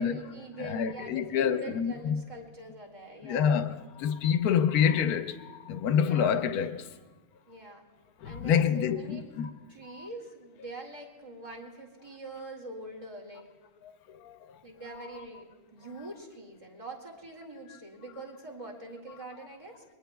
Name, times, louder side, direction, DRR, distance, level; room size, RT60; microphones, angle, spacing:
voice 1, 0.0-3.9 5.9-6.5 7.5-7.8 8.2-9.3 9.7-13.5 14.6-19.8, right 2 dB, 20° right, 2.1 m, -44 dB
voice 2, 0.6-2.1 3.2-6.8 8.2-9.5 14.3-14.4, left 8 dB, 90° left, 1.2 m, -27 dB
28.5 x 22.0 x 2.3 m
omnidirectional pair, 1.6 m